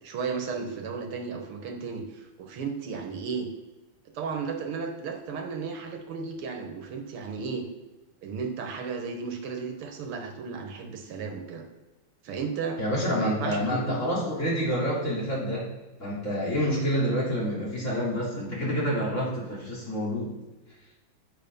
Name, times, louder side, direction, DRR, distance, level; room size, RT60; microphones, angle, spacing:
voice 1, 0.0-3.5 4.1-7.7 8.2-11.6 12.2-12.8 13.1-14.1, right 5 dB, 85° right, 3 dB, 2.1 m, -34 dB
voice 2, 12.8-15.7 16.0-20.3, equal, 35° left, -7 dB, 3.5 m, -28 dB
9.3 x 7.5 x 5.4 m, 1.2 s
omnidirectional pair, 2.3 m